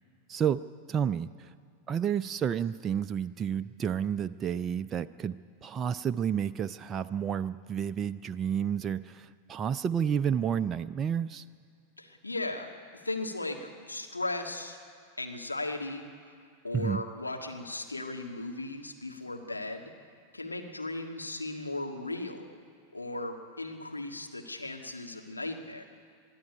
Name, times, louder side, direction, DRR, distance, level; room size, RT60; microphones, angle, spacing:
voice 1, 0.3-0.6 0.9-1.5 1.9-11.4 16.7-17.0, right 8 dB, 25° right, 10 dB, 0.4 m, -30 dB
voice 2, 12.0-14.8 15.2-16.0 16.6-19.9 20.3-22.5 22.9-25.8, left 2 dB, 80° left, 3 dB, 1.8 m, -37 dB
22.0 x 13.0 x 10.0 m, 2.2 s
figure-of-eight pair, 90°, 0 cm